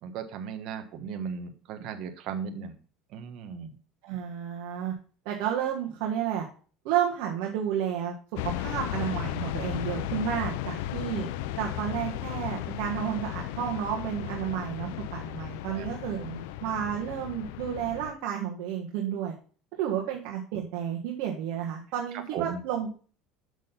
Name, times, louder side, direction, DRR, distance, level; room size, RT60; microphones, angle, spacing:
voice 1, 0.0-2.8 3.1-3.7 15.7-15.9 16.2-16.4 22.3-22.6, right 6 dB, 55° right, 7 dB, 1.3 m, -36 dB
voice 2, 4.0-4.9 5.2-6.5 6.8-8.1 8.4-11.3 11.6-16.2 16.6-19.3 19.8-22.9, right 9 dB, 70° right, -1 dB, 1.5 m, -31 dB
sound 1, 8.4-18.1, left 13 dB, 85° left, 0.5 m, -35 dB
6.4 x 6.3 x 5.4 m, 0.40 s
cardioid pair, 140°, 0 cm